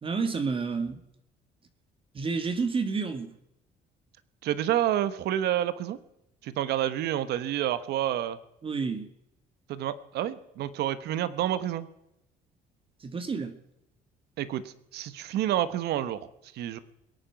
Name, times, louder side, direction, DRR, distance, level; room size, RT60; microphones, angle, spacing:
voice 1, 0.0-1.0 2.1-3.3 8.6-9.1 13.0-13.6, right 4 dB, 30° right, 9 dB, 1.7 m, -30 dB
voice 2, 4.4-6.0 6.4-8.4 9.7-11.9 14.4-16.3 16.5-16.8, right 11 dB, 75° right, 15 dB, 1.0 m, -29 dB
22.0 x 9.1 x 5.8 m, 0.85 s
cardioid pair, 110°, 17 cm